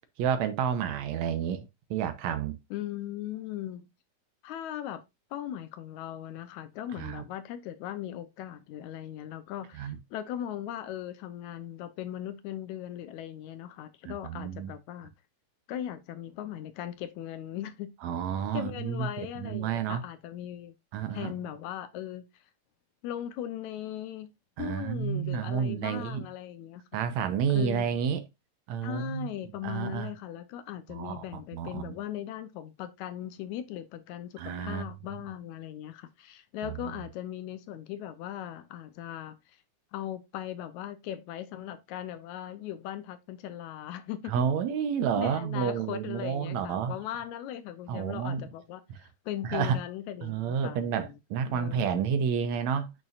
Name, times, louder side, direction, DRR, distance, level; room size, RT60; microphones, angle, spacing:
voice 1, 0.2-1.6 1.9-2.6 7.0-7.2 9.8-10.0 14.1-14.7 18.0-20.0 20.9-21.3 24.6-26.3 26.9-28.2 28.7-29.3 29.6-30.1 30.9-31.9 34.4-34.9 36.6-37.0 44.3-46.9 47.9-48.4 48.9-49.0 49.4-49.8 50.2-52.9, right 7 dB, 70° right, 2.0 m, -30 dB
voice 2, 2.7-3.9 4.4-5.0 5.3-15.1 15.7-17.9 18.5-20.7 21.1-22.3 23.0-24.3 24.6-26.8 27.5-27.9 28.8-39.6 39.9-44.3 45.2-48.8 49.3-51.1 51.5-52.0, left 11 dB, 75° left, 2.0 m, -38 dB
8.9 x 6.2 x 2.4 m
omnidirectional pair, 3.5 m